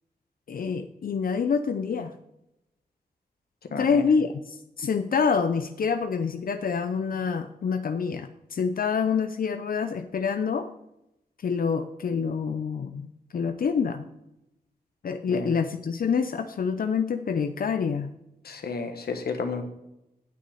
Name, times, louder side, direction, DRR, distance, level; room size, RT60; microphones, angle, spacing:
voice 1, 0.5-2.1 3.8-10.7 11.4-14.1 15.0-18.1, left 6 dB, 65° left, 9 dB, 0.6 m, -27 dB
voice 2, 3.7-4.1 15.3-15.5 18.4-19.6, left 4 dB, 85° left, 5 dB, 1.4 m, -32 dB
9.4 x 6.2 x 6.4 m, 0.86 s
wide cardioid pair, 100°, 16 cm